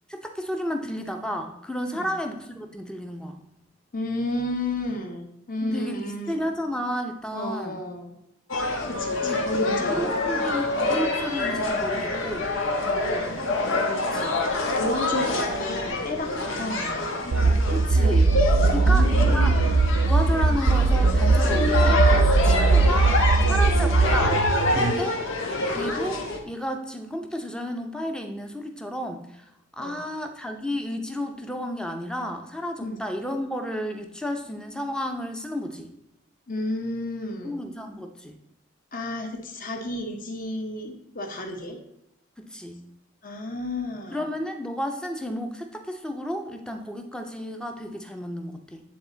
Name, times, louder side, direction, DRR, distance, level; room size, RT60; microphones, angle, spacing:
voice 1, 0.1-3.4 5.6-7.8 9.2-9.4 9.8-12.5 14.0-14.4 17.7-19.6 20.0-24.4 24.7-25.2 25.7-29.4 29.7-35.9 37.4-38.4 42.4-42.9 44.1-48.8, equal, 5° left, 4 dB, 0.7 m, -32 dB
voice 2, 3.9-6.4 7.3-8.1 8.9-10.0 12.8-13.4 14.8-17.0 18.6-19.5 29.8-30.1 32.8-33.0 36.5-37.6 38.9-41.8 43.2-44.2, left 1 dB, 45° left, 3 dB, 1.2 m, -32 dB
sound 1, 8.5-26.4, left 2 dB, 75° left, 1.3 m, -26 dB
sound 2, 17.3-24.9, right 3 dB, 85° right, 0.5 m, -20 dB
9.5 x 4.1 x 3.9 m, 0.83 s
head